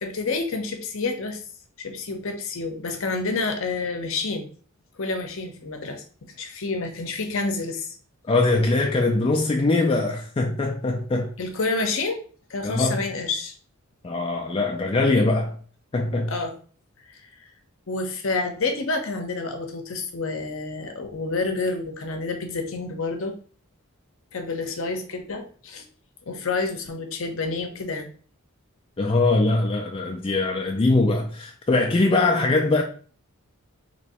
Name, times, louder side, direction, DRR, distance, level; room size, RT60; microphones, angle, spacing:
voice 1, 0.0-1.4 1.8-4.5 5.0-6.0 6.4-8.0 11.4-12.2 12.5-13.5 16.3-16.5 17.1-17.2 17.9-23.3 24.3-25.8 26.3-28.1, left 3 dB, 60° left, 0.7 m, -28 dB
voice 2, 8.3-11.3 12.6-13.0 14.0-15.6 15.9-16.3 29.0-32.8, left 2 dB, 25° left, 0.3 m, -22 dB
3.0 x 2.6 x 4.1 m
head